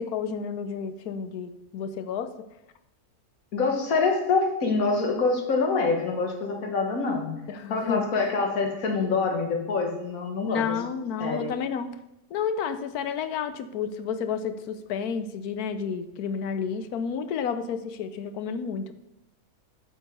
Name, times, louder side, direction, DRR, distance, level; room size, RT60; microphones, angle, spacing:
voice 1, 0.0-2.3 7.5-8.1 10.5-11.9 12.3-18.9, left 6 dB, 85° left, 11 dB, 1.2 m, -31 dB
voice 2, 3.5-7.3 7.7-10.8 11.2-11.5, left 4 dB, 65° left, 2 dB, 1.9 m, -25 dB
8.8 x 6.3 x 5.3 m, 0.90 s
omnidirectional pair, 1.6 m